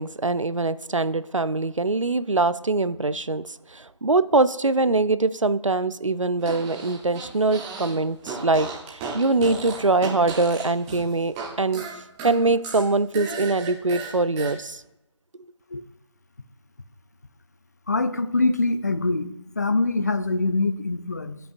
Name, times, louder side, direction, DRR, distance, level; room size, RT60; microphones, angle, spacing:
voice 1, 0.0-11.8 12.2-14.8, right 3 dB, 85° right, 15 dB, 0.5 m, -23 dB
Fart, 6.4-8.0 8.2-11.5 11.7-14.5, right 4 dB, 5° right, 0.8 m, -35 dB
voice 2, 17.9-21.4, left 3 dB, 35° left, 11 dB, 0.5 m, -24 dB
16.0 x 5.6 x 2.5 m, 0.90 s
figure-of-eight pair, 160°, 16 cm